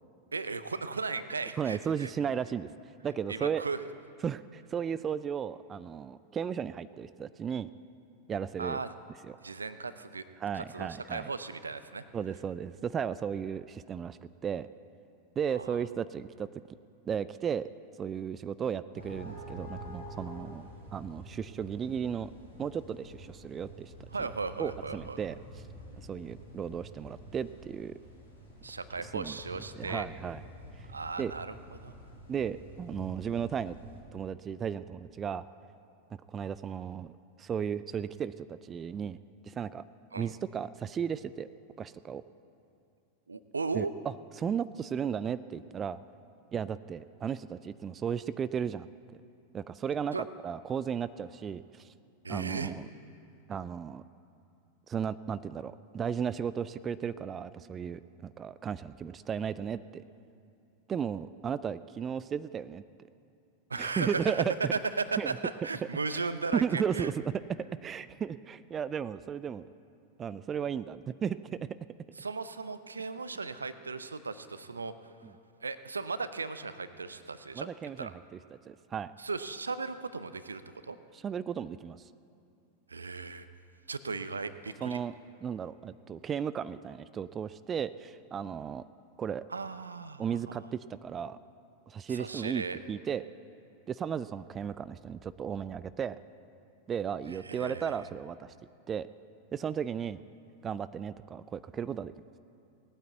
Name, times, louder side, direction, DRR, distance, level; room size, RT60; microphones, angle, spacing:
voice 1, 0.3-2.1 3.3-3.8 8.6-8.9 9.4-10.2 10.5-12.0 15.5-15.8 24.1-25.2 28.6-30.1 30.9-31.5 31.8-31.9 40.1-40.3 43.3-43.9 50.1-50.2 52.2-52.7 63.7-64.4 64.7-67.1 72.2-75.1 75.6-77.7 78.0-78.1 79.2-81.0 82.9-83.5 83.9-85.0 89.5-90.5 92.1-92.8 97.3-98.0, right 4 dB, 75° right, 13 dB, 0.6 m, -36 dB
voice 2, 1.6-2.7 3.0-3.6 4.2-7.7 8.3-8.8 9.2-9.4 10.4-11.3 12.1-14.7 15.4-16.5 17.1-17.7 18.0-22.3 22.6-23.9 24.6-25.6 26.0-28.0 29.1-29.4 29.8-30.4 30.8-30.9 31.2-31.3 32.3-33.8 34.1-35.4 36.3-37.1 37.4-39.2 39.4-39.8 40.1-41.5 41.8-42.2 43.7-46.0 46.5-48.9 49.5-51.9 52.3-52.9 53.5-54.0 54.9-60.0 60.9-62.8 63.8-64.7 65.2-65.4 65.8-66.2 66.5-67.1 67.5-69.7 70.2-71.7 75.2-75.3 77.5-78.4 78.7-79.1 81.1-82.1 84.8-85.1 85.4-88.8 89.2-89.4 90.2-91.4 91.9-93.2 93.9-96.2 96.9-98.5 98.9-99.1 99.5-100.2 100.6-102.1, right 7 dB, 25° right, 16 dB, 0.3 m, -35 dB
sound 1, 18.9-34.0, equal, 85° left, 3.9 m, -48 dB
18.5 x 9.1 x 8.1 m, 2.6 s
figure-of-eight pair, 90°, 0 cm